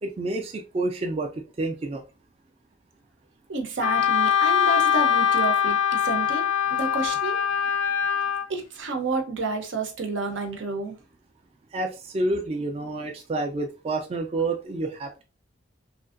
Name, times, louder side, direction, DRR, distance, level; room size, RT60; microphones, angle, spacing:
voice 1, 0.0-1.3 1.6-2.0 11.7-15.2, right 2 dB, 30° right, 0.3 m, -29 dB
voice 2, 3.5-7.4 8.5-11.0, right 3 dB, 85° right, 0.7 m, -30 dB
Wind instrument woodwind instrument, 3.8-8.5, left 8 dB, 90° left, 0.3 m, -22 dB
2.8 x 2.5 x 2.4 m
head